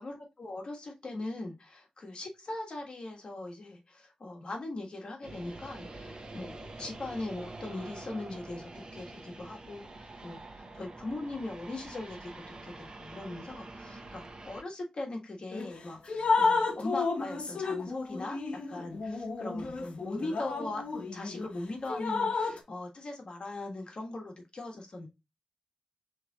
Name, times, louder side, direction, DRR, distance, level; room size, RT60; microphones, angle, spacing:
voice 1, 0.0-20.8 21.1-25.1, left 2 dB, 55° left, 2 dB, 1.4 m, -40 dB
sound 1, 5.2-14.6, right 2 dB, 45° right, 0.9 m, -46 dB
Drip, 15.5-15.7 16.1-21.5 21.9-22.6, left 4 dB, 75° left, 1.1 m, -31 dB
6.5 x 3.3 x 2.3 m, 0.25 s
wide cardioid pair, 140°, 2 cm